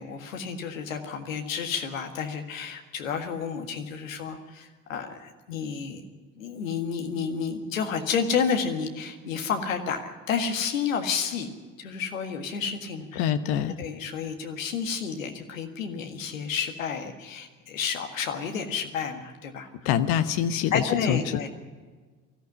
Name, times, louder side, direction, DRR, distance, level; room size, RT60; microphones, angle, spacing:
voice 1, 0.0-6.0 6.4-11.5 11.8-13.2 13.8-19.7 20.7-21.5, left 6 dB, 85° left, 4 dB, 1.8 m, -30 dB
voice 2, 13.2-13.8 19.8-21.5, left 9 dB, 70° left, 9 dB, 1.2 m, -25 dB
19.0 x 14.5 x 9.6 m, 1.4 s
hypercardioid pair, 55°, 39 cm